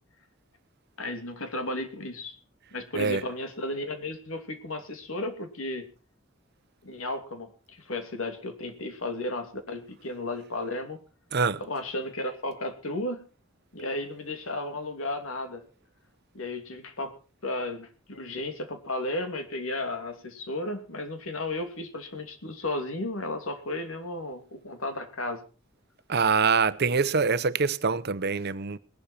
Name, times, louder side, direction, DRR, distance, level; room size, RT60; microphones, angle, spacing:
voice 1, 1.0-2.4 2.7-5.9 6.8-11.0 11.6-13.2 13.7-15.6 16.3-17.1 17.4-25.4, left 2 dB, 80° left, 2.8 m, -34 dB
voice 2, 26.1-28.8, right 5 dB, 55° right, 0.8 m, -24 dB
19.5 x 12.0 x 4.4 m
head